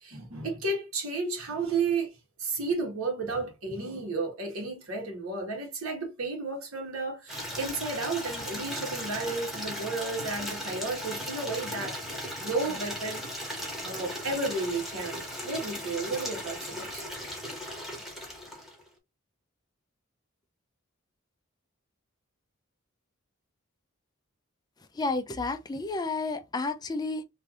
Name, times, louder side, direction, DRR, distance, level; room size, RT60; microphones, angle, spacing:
voice 1, 0.0-12.0 12.4-13.2 13.8-17.0, right 3 dB, 90° right, 1.4 m, -33 dB
Water tap faucet / Liquid, 7.3-18.9, equal, ahead, 0.9 m, -37 dB
voice 2, 24.9-27.3, left 3 dB, 20° left, 0.3 m, -31 dB
3.2 x 2.6 x 2.4 m
head